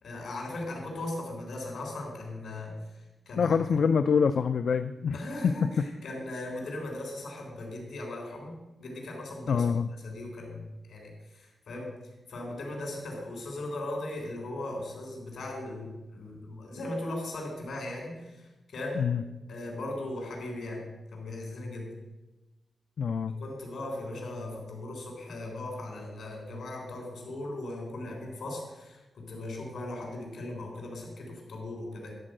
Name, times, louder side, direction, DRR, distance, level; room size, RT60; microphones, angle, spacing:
voice 1, 0.0-2.7 3.2-3.6 5.1-9.7 10.0-12.0 12.3-18.5 18.7-19.1 19.5-20.8 21.1-21.9 23.4-32.1, left 1 dB, 80° left, 0 dB, 3.5 m, -38 dB
voice 2, 3.4-5.2 5.4-5.7 9.5-9.9 19.0-19.2 23.0-23.3, left 6 dB, 65° left, 10 dB, 0.3 m, -25 dB
11.5 x 4.5 x 7.7 m, 1.1 s
wide cardioid pair, 160°, 0 cm